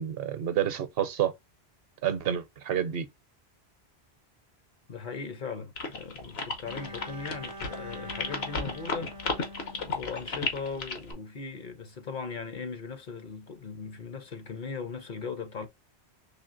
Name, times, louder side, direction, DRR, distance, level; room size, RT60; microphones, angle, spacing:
voice 1, 0.0-1.3 2.0-3.1, right 10 dB, 65° right, 0.8 m, -29 dB
voice 2, 4.9-15.7, left 5 dB, 50° left, 0.7 m, -39 dB
sound 1, 5.8-11.1, left 4 dB, 75° left, 1.2 m, -33 dB
Bowed string instrument, 6.6-10.7, equal, 40° right, 0.5 m, -44 dB
4.2 x 3.1 x 2.5 m
omnidirectional pair, 1.1 m